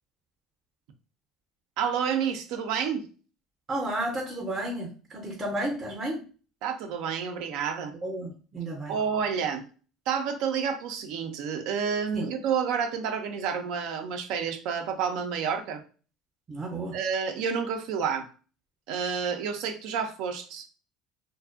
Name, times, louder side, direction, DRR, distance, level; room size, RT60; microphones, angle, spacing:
voice 1, 1.8-3.1 6.6-7.9 8.9-9.7 10.1-15.8 16.9-18.3 18.9-20.7, right 7 dB, 75° right, 6 dB, 0.4 m, -29 dB
voice 2, 3.7-6.2 8.0-9.0 12.1-12.3 16.5-17.0, right 1 dB, 30° right, 0 dB, 0.6 m, -32 dB
2.4 x 2.2 x 2.4 m, 0.38 s
supercardioid pair, 100°, 0 cm